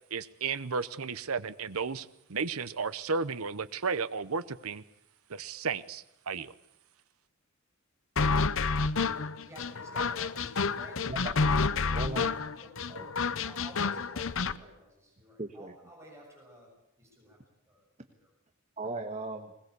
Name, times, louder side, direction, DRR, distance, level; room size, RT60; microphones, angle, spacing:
voice 1, 0.1-4.8 5.3-6.5, right 5 dB, 75° right, 14 dB, 0.9 m, -33 dB
sound 1, 8.2-14.6, left 4 dB, 65° left, 0.8 m, -29 dB
voice 2, 9.4-11.2 11.7-16.7 17.0-17.4 17.7-18.3, equal, 15° right, 0 dB, 7.1 m, -52 dB
voice 3, 11.1-11.7 11.9-12.3 12.9-13.1 15.4-15.7 18.8-19.5, right 2 dB, 30° right, 6 dB, 1.4 m, -37 dB
21.0 x 21.0 x 8.2 m, 0.81 s
head